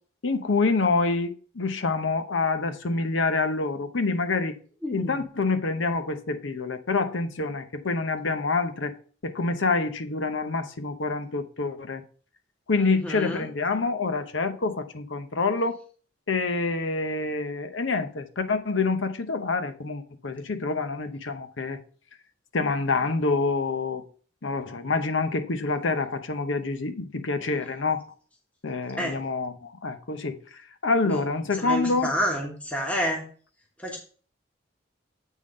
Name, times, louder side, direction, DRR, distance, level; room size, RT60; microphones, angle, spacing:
voice 1, 0.2-4.6 4.9-8.9 9.2-12.0 12.7-15.8 16.3-21.8 22.5-24.0 24.4-28.0 28.6-32.1, left 3 dB, 85° left, 0.8 m, -27 dB
voice 2, 4.8-5.3 12.8-13.5 27.5-27.7 29.0-29.2 31.0-33.2 33.8-34.0, equal, 5° left, 1.2 m, -30 dB
8.1 x 3.7 x 5.1 m
head